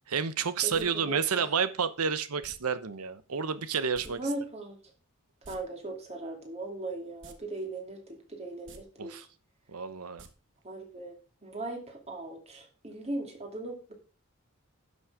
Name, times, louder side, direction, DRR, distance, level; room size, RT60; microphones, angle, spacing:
voice 1, 0.1-4.2 9.0-9.2 9.7-10.2, right 6 dB, 85° right, 14 dB, 0.9 m, -30 dB
voice 2, 0.6-1.4 4.1-4.8 5.5-9.1 10.6-13.9, right 2 dB, 30° right, 3 dB, 2.5 m, -38 dB
sound 1, 0.7-0.9 2.4-2.6 3.9-4.1 4.4-4.5 5.3-5.6 7.2-7.4 7.7-7.8 8.6-8.8 10.2-10.3 10.6-10.7, right 4 dB, 55° right, 1.3 m, -49 dB
11.0 x 6.4 x 4.8 m, 0.35 s
head